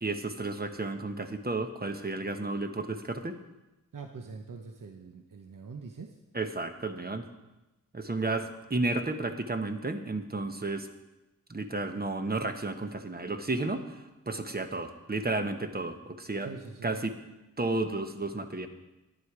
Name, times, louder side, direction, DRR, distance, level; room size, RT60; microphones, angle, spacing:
voice 1, 0.0-3.4 6.3-7.3 7.9-10.9 11.5-13.8 14.3-16.5 16.8-17.1 17.6-18.7, right 2 dB, 30° right, 7 dB, 1.0 m, -32 dB
voice 2, 3.9-6.2 16.4-17.0, right 4 dB, 75° right, 4 dB, 0.9 m, -43 dB
11.0 x 9.8 x 4.8 m, 1.0 s
wide cardioid pair, 80°, 32 cm